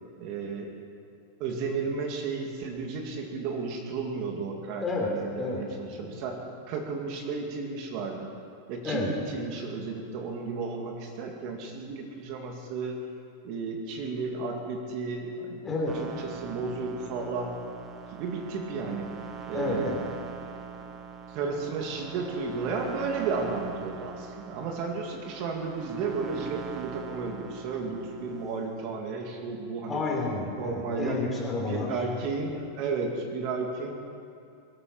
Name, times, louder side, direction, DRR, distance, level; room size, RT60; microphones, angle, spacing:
voice 1, 0.2-0.7 1.4-6.4 6.7-8.3 8.7-13.0 13.4-15.6 15.9-17.5 18.1-19.1 19.5-19.9 21.3-30.0 30.5-31.2 31.6-33.9, right 4 dB, 45° right, 2 dB, 2.0 m, -33 dB
voice 2, 5.9-6.2 8.8-9.1 15.6-15.9 19.5-20.1 29.9-32.0, left 3 dB, 15° left, -2 dB, 3.4 m, -30 dB
sound 1, 15.8-28.6, right 6 dB, 20° right, 1.4 m, -42 dB
22.5 x 8.8 x 6.1 m, 2.6 s
supercardioid pair, 145°, 0 cm